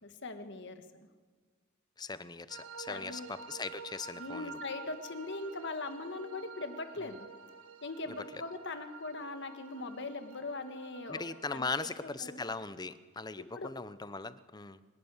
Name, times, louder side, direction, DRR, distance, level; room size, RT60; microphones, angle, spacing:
voice 1, 0.0-1.1 2.9-3.3 4.1-7.3 7.8-11.2 11.5-12.4 13.5-13.7, left 3 dB, 55° left, 9 dB, 1.6 m, -41 dB
voice 2, 2.0-4.6 8.3-8.4 11.1-14.8, left 3 dB, 20° left, 15 dB, 0.7 m, -39 dB
sound 1, 2.5-11.4, right 5 dB, 90° right, 1.7 m, -49 dB
24.5 x 11.5 x 9.7 m, 1.4 s
head